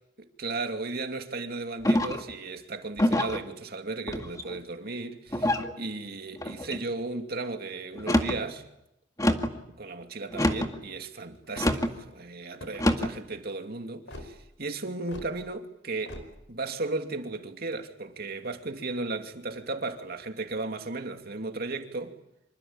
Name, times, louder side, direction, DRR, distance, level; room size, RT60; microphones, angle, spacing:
voice 1, 0.4-8.6 9.7-16.2 16.5-22.2, right 3 dB, 55° right, 2.6 m, -35 dB
sound 1, 1.8-2.3 3.0-3.4 4.1-4.6 5.3-5.7 6.4-6.8 7.9-8.4 9.2-9.6 10.3-10.8 11.6-11.9 12.8-13.2, left 1 dB, 20° left, 2.0 m, -26 dB
sound 2, 10.5-10.8 11.4-11.9 12.5-13.0 14.1-14.3 15.1-15.3 16.1-16.3, left 1 dB, 85° left, 5.0 m, -43 dB
26.5 x 24.5 x 8.9 m
head